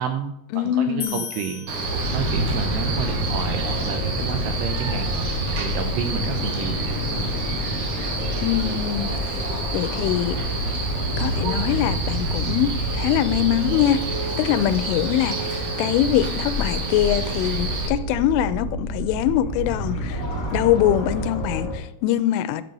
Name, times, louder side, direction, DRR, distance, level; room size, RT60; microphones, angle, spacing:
voice 1, 0.0-6.8 7.1-7.3, right 8 dB, 90° right, 2.5 m, -31 dB
voice 2, 0.5-1.2 8.4-9.1 9.7-10.4 11.2-20.2 20.5-22.6, left 11 dB, 85° left, 3.1 m, -23 dB
sound 1, 1.0-2.6, left 9 dB, 70° left, 1.8 m, -36 dB
Male speech man speaking, 1.7-17.9, right 3 dB, 55° right, 2.3 m, -30 dB
sound 2, 2.0-21.7, equal, 40° left, 1.2 m, -28 dB
13.0 x 6.6 x 5.3 m
omnidirectional pair, 5.6 m